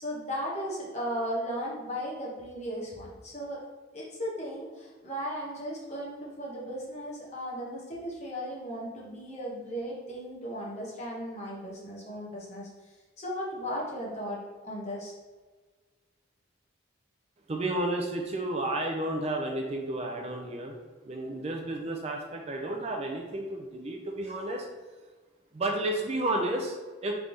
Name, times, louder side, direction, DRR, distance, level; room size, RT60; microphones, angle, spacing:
voice 1, 0.0-3.6 3.9-15.1, equal, 35° left, -5 dB, 1.0 m, -36 dB
voice 2, 17.5-20.8 21.0-24.7 25.5-27.1, right 1 dB, 30° right, 1 dB, 0.4 m, -32 dB
3.4 x 3.2 x 3.9 m, 1.4 s
head